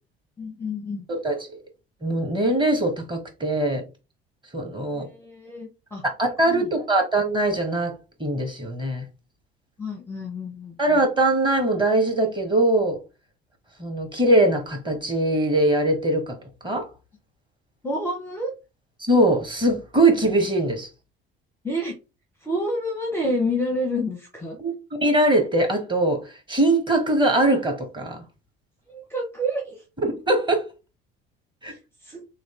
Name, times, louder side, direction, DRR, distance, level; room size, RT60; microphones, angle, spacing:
voice 1, 0.4-1.0 4.9-6.0 6.5-6.7 9.8-10.8 17.8-18.5 21.6-21.9 22.4-24.6 28.9-29.8 32.0-32.2, left 1 dB, 10° left, 0.7 m, -28 dB
voice 2, 1.1-1.6 2.0-3.8 4.5-5.1 6.0-7.9 8.2-9.1 10.8-13.0 13.8-16.3 16.6-16.9 19.0-20.9 24.6-28.2 30.0-30.6 31.6-31.7, right 1 dB, 15° right, 1.2 m, -22 dB
3.1 x 2.5 x 3.0 m
figure-of-eight pair, 55°, 30 cm